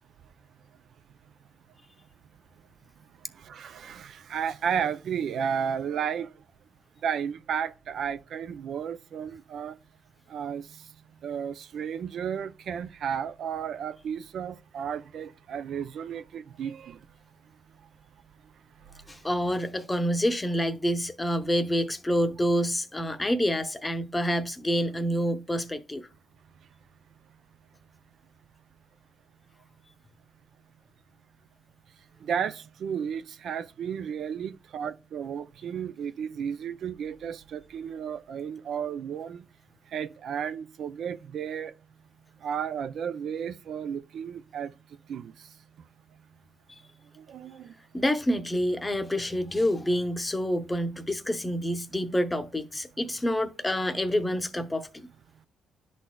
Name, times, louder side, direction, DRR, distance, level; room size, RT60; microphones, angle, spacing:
voice 1, 3.3-6.4 7.0-9.8 10.3-10.9 11.2-17.0 18.9-19.2 32.2-39.5 39.9-41.7 42.4-44.7 45.1-45.6 47.1-47.7, right 7 dB, 65° right, 0.3 m, -33 dB
voice 2, 19.1-26.1 46.7-46.8 47.9-55.1, equal, 15° left, 0.7 m, -27 dB
11.0 x 4.1 x 2.2 m
cardioid pair, 90°, 0 cm